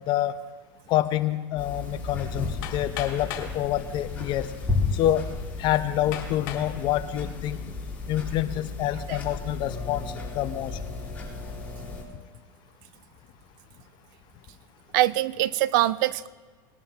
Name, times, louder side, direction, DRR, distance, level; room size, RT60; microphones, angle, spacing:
voice 1, 0.9-4.5 4.9-5.2 5.6-7.6 8.1-10.7, left 13 dB, 45° left, 12 dB, 0.7 m, -27 dB
sound 1, 1.6-12.0, left 3 dB, 15° left, 4.2 m, -34 dB
Hammer, 2.6-3.6 4.5-4.6 5.2-5.3 6.1-6.7 7.3-7.7, left 10 dB, 70° left, 2.1 m, -37 dB
voice 2, 14.9-16.3, right 15 dB, 65° right, 18 dB, 0.5 m, -23 dB
20.5 x 11.0 x 2.9 m, 1.4 s
supercardioid pair, 130°, 11 cm